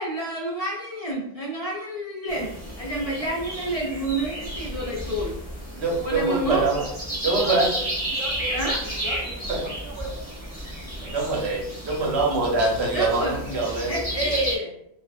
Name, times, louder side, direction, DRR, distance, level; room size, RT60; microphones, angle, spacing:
voice 1, 0.0-5.3 6.0-6.6 8.5-8.8 12.9-13.4 13.9-14.7, right 1 dB, 40° left, -6 dB, 0.6 m, -29 dB
sound 1, 2.3-14.6, equal, 10° left, 0.9 m, -32 dB
voice 2, 5.8-6.8 7.2-7.7 9.5-9.6 11.1-14.0, right 3 dB, 85° right, -1 dB, 0.9 m, -24 dB
voice 3, 7.2-7.8 8.1-10.1 10.8-11.5 12.0-12.3 13.5-13.7, right 2 dB, 35° right, -4 dB, 0.7 m, -39 dB
2.4 x 2.3 x 2.3 m, 0.75 s
omnidirectional pair, 1.1 m